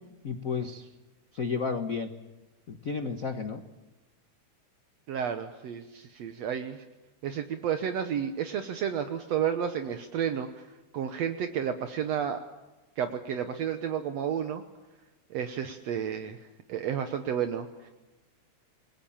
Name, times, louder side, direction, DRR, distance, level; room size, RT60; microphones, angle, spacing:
voice 1, 0.2-0.9 1.3-2.1 2.7-3.6, left 5 dB, 55° left, 8 dB, 0.9 m, -32 dB
voice 2, 5.1-6.8 7.2-10.5 10.9-12.4 13.0-14.6 15.3-16.4 16.7-17.9, right 8 dB, 70° right, 8 dB, 2.1 m, -31 dB
28.0 x 21.0 x 7.3 m, 1.1 s
omnidirectional pair, 3.4 m